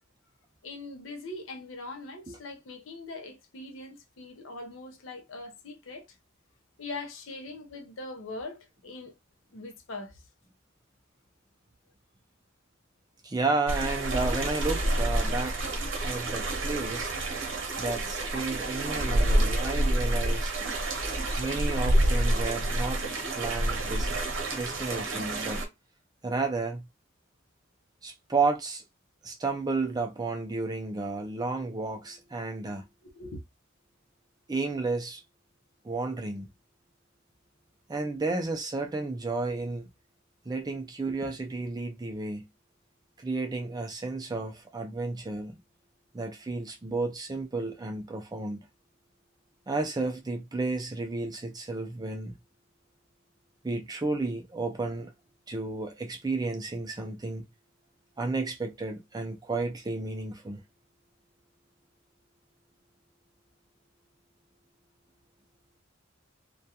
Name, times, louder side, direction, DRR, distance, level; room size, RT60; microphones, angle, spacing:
voice 1, 0.6-6.2 6.8-9.1 9.5-10.2 33.0-33.4, left 2 dB, 75° left, 0.6 m, -41 dB
voice 2, 13.2-15.6 16.0-17.1 17.8-20.5 21.4-23.0 23.3-24.2 24.5-25.6 26.2-26.9 28.0-28.8 29.2-32.9 34.5-35.2 35.8-36.5 37.9-39.9 40.5-42.4 43.2-45.6 46.1-48.6 49.7-52.4 53.6-55.1 55.5-57.4 58.2-60.6, right 3 dB, 20° right, 0.4 m, -32 dB
sound 1, 13.7-25.6, right 1 dB, 65° right, 0.8 m, -28 dB
2.3 x 2.2 x 2.7 m
head